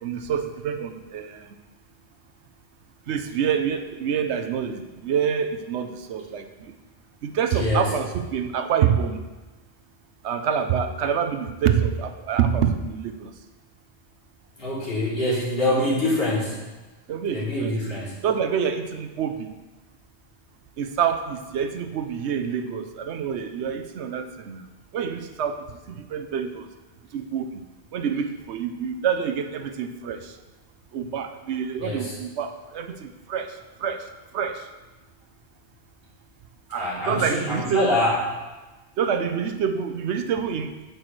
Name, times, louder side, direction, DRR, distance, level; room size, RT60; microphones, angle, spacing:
voice 1, 0.0-1.5 3.1-6.5 7.2-9.2 10.2-13.3 17.1-19.5 20.8-24.6 24.9-26.7 27.1-27.5 27.9-30.3 30.9-33.5 33.8-34.0 34.3-34.6 36.7-37.9 39.0-40.7, right 7 dB, 75° right, 8 dB, 0.9 m, -26 dB
voice 2, 7.5-7.9 14.6-16.5 17.3-18.1 31.8-32.1 36.7-38.2, left 1 dB, 55° left, -9 dB, 3.3 m, -25 dB
8.8 x 7.9 x 3.2 m, 1.2 s
omnidirectional pair, 1.2 m